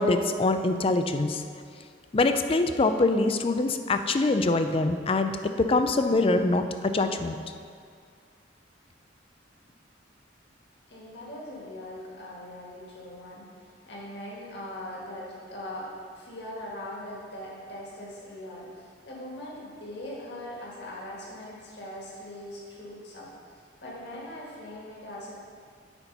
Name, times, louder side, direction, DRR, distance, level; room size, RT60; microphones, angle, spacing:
voice 1, 0.0-1.4 2.1-7.4, left 2 dB, 30° left, 8 dB, 0.4 m, -24 dB
voice 2, 10.9-13.5 13.9-23.3 23.5-25.3, left 1 dB, 65° left, -5 dB, 1.8 m, -41 dB
8.9 x 4.4 x 5.4 m, 2.2 s
head